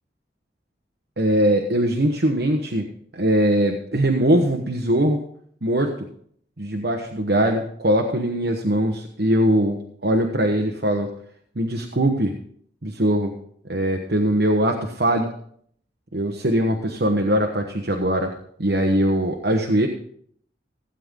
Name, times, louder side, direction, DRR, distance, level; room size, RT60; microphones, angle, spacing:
voice 1, 1.2-2.9 3.1-5.2 5.6-6.1 6.6-11.1 11.6-12.3 12.8-13.3 13.7-15.3 16.1-18.3 18.6-19.9, right 1 dB, 65° right, 3 dB, 1.1 m, -21 dB
16.5 x 8.9 x 3.7 m, 0.63 s
head